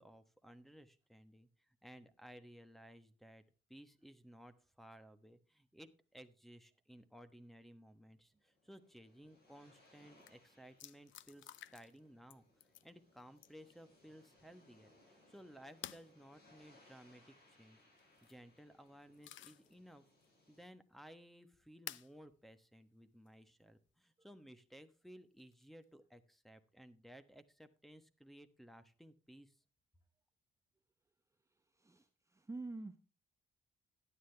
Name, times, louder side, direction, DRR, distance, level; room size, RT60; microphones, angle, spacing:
voice 1, 0.0-3.4 3.7-12.4 12.8-17.8 18.2-20.0 20.5-29.6, equal, ahead, 7 dB, 1.2 m, -58 dB
sound 1, 8.4-20.6, left 1 dB, 50° left, 7.3 m, -69 dB
sound 2, 9.9-10.0 10.2-10.3 10.8-12.0 12.3-12.9 13.4-13.7 15.8-16.1 18.0-18.4 18.9-19.7 20.2-20.3 21.9-22.1 23.3-23.4 25.4-25.8, left 12 dB, 75° left, 0.6 m, -52 dB
voice 2, 31.8-33.0, right 3 dB, 15° right, 7 dB, 0.8 m, -47 dB
12.5 x 9.9 x 3.4 m, 0.33 s
cardioid pair, 90°, 20 cm